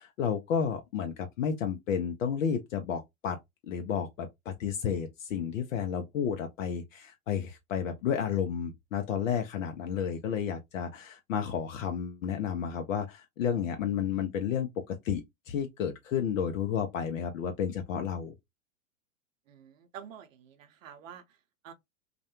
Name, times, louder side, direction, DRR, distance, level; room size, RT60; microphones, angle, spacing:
voice 1, 0.0-3.4 3.7-18.3, left 8 dB, 70° left, 0.6 m, -32 dB
voice 2, 19.5-21.4 21.6-21.7, right 8 dB, 70° right, 0.6 m, -48 dB
2.3 x 2.1 x 2.8 m
hypercardioid pair, 105°, 41 cm